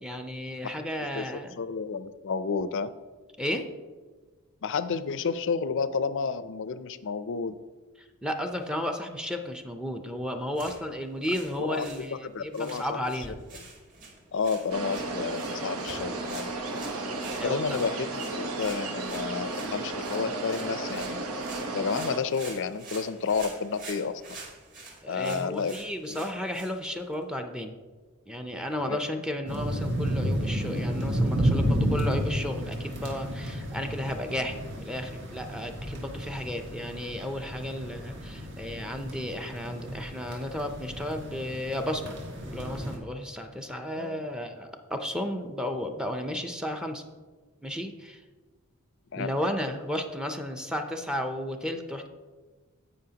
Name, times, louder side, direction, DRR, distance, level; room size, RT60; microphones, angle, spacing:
voice 1, 0.0-1.5 3.4-3.7 8.0-13.4 17.4-17.6 25.0-27.7 28.3-42.2 42.5-47.0 47.6-48.2 49.2-52.1, left 1 dB, 5° right, 5 dB, 0.6 m, -33 dB
voice 2, 1.6-2.9 4.6-7.5 11.6-11.9 12.2-13.0 14.3-16.5 17.4-21.2 21.7-24.2 25.1-25.7 26.1-26.3 28.8-29.2 43.9-44.2 49.1-49.3, left 5 dB, 60° left, 13 dB, 0.5 m, -31 dB
sound 1, 10.4-27.2, right 3 dB, 40° right, 2.3 m, -47 dB
sound 2, 14.7-22.2, right 2 dB, 85° right, 1.1 m, -34 dB
sound 3, 29.5-43.0, equal, 60° right, 1.8 m, -31 dB
17.0 x 5.6 x 2.9 m, 1.4 s
head